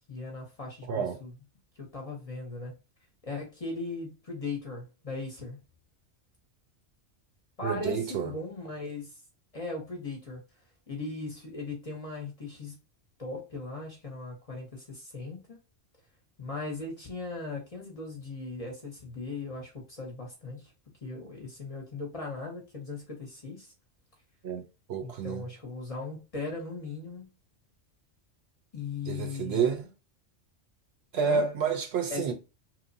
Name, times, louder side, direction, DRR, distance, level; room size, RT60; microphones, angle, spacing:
voice 1, 0.1-1.3 1.8-2.7 3.2-5.6 7.6-9.1 9.5-10.4 10.9-12.8 13.2-15.6 16.4-20.7 21.0-23.7 25.0-27.3 28.7-29.7 31.2-31.4 32.1-32.3, left 3 dB, 35° left, 0.7 m, -38 dB
voice 2, 0.9-1.2 7.6-8.4 24.4-25.5 29.0-29.8 31.1-32.3, right 6 dB, 70° right, 0.8 m, -29 dB
3.1 x 2.0 x 2.6 m
omnidirectional pair, 1.2 m